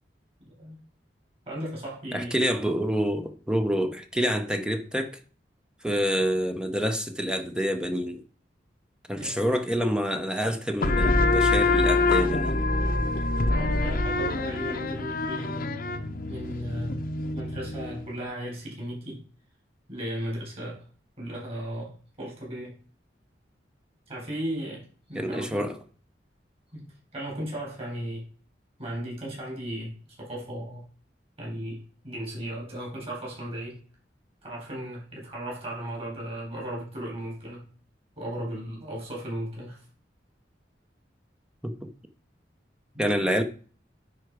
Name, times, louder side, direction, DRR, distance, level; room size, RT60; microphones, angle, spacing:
voice 1, 1.5-2.4 9.1-9.5 13.5-15.7 16.3-17.0 17.3-19.2 19.9-20.8 21.2-22.7 24.1-25.6 26.7-28.2 28.8-29.9 30.2-30.8 31.4-33.8 34.4-37.6 38.2-39.8 42.9-43.0, right 1 dB, 35° right, 4.1 m, -36 dB
voice 2, 2.1-5.2 5.8-8.2 9.1-12.6 25.1-25.8 41.6-41.9 43.0-43.4, equal, 5° right, 0.7 m, -27 dB
sound 1, 10.8-18.1, left 2 dB, 55° left, 0.8 m, -25 dB
9.7 x 4.5 x 4.7 m
head